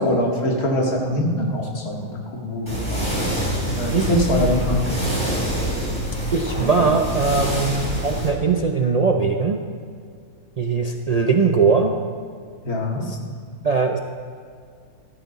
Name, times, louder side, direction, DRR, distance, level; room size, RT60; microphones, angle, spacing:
voice 1, 0.0-3.1 3.8-5.0 12.6-13.1, left 1 dB, 80° left, -1 dB, 2.4 m, -23 dB
sound 1, 2.7-8.3, right 1 dB, 20° left, 4.0 m, -25 dB
voice 2, 3.9-4.2 6.3-9.6 10.6-11.9 12.9-13.2 13.6-14.0, right 4 dB, 45° right, 3 dB, 0.5 m, -20 dB
15.5 x 13.0 x 4.1 m, 2.1 s
omnidirectional pair, 1.5 m